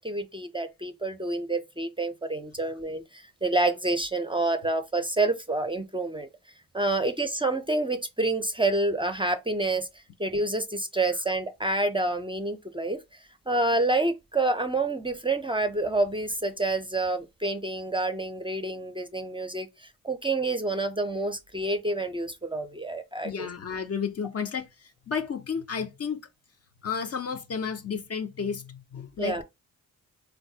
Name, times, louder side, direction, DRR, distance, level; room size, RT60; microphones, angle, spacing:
voice 1, 0.0-6.3 6.7-9.9 10.2-13.0 13.5-19.7 20.0-23.5 29.2-29.4, right 2 dB, 15° right, 0.5 m, -28 dB
voice 2, 23.2-24.7 25.1-26.3 26.8-29.4, left 6 dB, 45° left, 0.5 m, -32 dB
3.8 x 2.1 x 2.7 m
cardioid pair, 55°, 36 cm